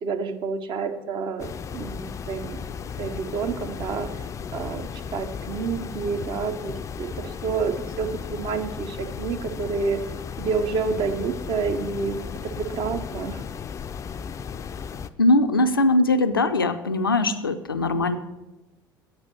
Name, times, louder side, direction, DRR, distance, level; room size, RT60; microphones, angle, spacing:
voice 1, 0.0-2.6 3.0-10.0 10.4-13.4, right 5 dB, 45° right, 7 dB, 0.8 m, -29 dB
sound 1, 1.4-15.1, left 6 dB, 25° left, 0.4 m, -35 dB
voice 2, 15.2-18.2, left 2 dB, 85° left, 8 dB, 0.4 m, -21 dB
8.1 x 5.3 x 6.6 m, 1.1 s
figure-of-eight pair, 60°, 12 cm